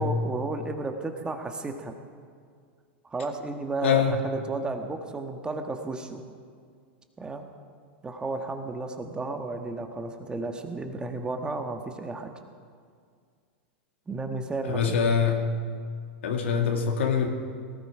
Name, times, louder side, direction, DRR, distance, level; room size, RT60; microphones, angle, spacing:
voice 1, 0.0-1.9 3.0-6.2 7.2-7.5 8.0-12.3 14.1-15.0, right 3 dB, 15° right, 5 dB, 1.4 m, -33 dB
voice 2, 3.8-4.2 14.7-15.4 16.2-17.3, left 7 dB, 85° left, 3 dB, 2.2 m, -24 dB
18.0 x 15.0 x 5.0 m, 2.1 s
hypercardioid pair, 125°, 6 cm